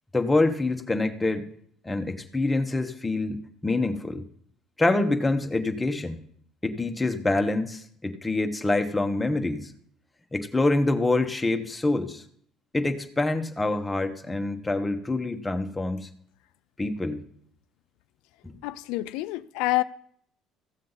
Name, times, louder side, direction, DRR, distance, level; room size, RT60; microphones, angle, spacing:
voice 1, 0.1-1.5 1.8-4.3 4.8-6.2 6.6-9.7 10.3-12.2 12.7-16.1 16.8-17.2 18.4-18.6, left 2 dB, 15° left, 1.3 m, -26 dB
voice 2, 18.6-19.8, left 19 dB, 85° left, 0.3 m, -27 dB
15.0 x 7.3 x 4.1 m
supercardioid pair, 90°, 0 cm